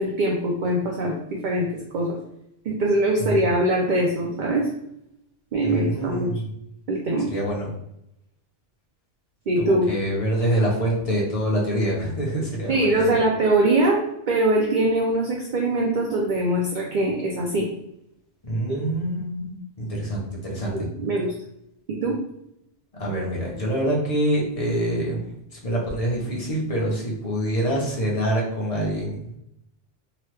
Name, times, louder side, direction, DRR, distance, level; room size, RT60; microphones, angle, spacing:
voice 1, 0.0-2.2 2.6-4.7 5.5-6.3 6.9-7.3 9.5-9.9 12.7-14.0 14.3-17.7 18.7-18.8 20.7-21.3 22.0-22.2, right 1 dB, 60° right, -1 dB, 0.5 m, -22 dB
voice 2, 5.6-6.4 7.3-7.7 9.6-13.1 18.4-20.9 23.0-25.2 25.6-29.4, right 1 dB, 35° left, -3 dB, 0.7 m, -25 dB
2.9 x 2.3 x 3.2 m, 0.79 s
omnidirectional pair, 1.3 m